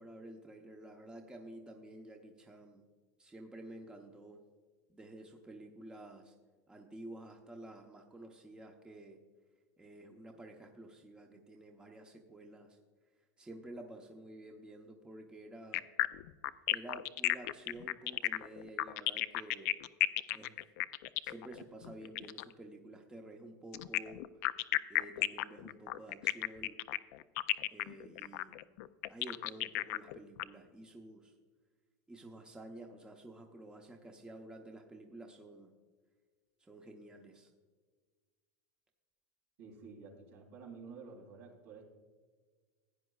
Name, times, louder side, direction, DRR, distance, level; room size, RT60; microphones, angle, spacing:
voice 1, 0.0-2.8 3.2-4.4 4.9-6.3 6.7-9.2 9.8-12.8 13.4-15.9 16.7-19.7 20.3-20.6 21.2-24.2 24.9-26.8 27.7-28.6 29.1-31.3 32.1-35.7 36.6-37.5, right 1 dB, 10° right, 2 dB, 0.8 m, -51 dB
sound 1, 15.7-22.5 23.7-30.4, left 18 dB, 65° left, 0.4 m, -34 dB
voice 2, 39.6-41.9, right 5 dB, 70° right, 1 dB, 3.1 m, -51 dB
15.5 x 9.3 x 2.3 m, 1.5 s
supercardioid pair, 140°, 9 cm